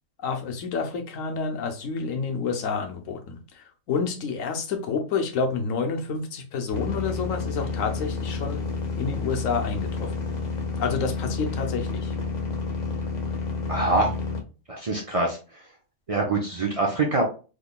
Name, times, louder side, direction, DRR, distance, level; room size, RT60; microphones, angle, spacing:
voice 1, 0.2-8.6 9.0-10.2 10.8-12.1, left 5 dB, 75° left, 1.1 m, -29 dB
sound 1, 6.7-14.4, left 4 dB, 45° left, 0.6 m, -30 dB
voice 2, 13.7-14.1 14.7-15.4 16.1-17.2, right 2 dB, 55° right, 0.3 m, -24 dB
3.7 x 3.2 x 2.3 m
omnidirectional pair, 1.4 m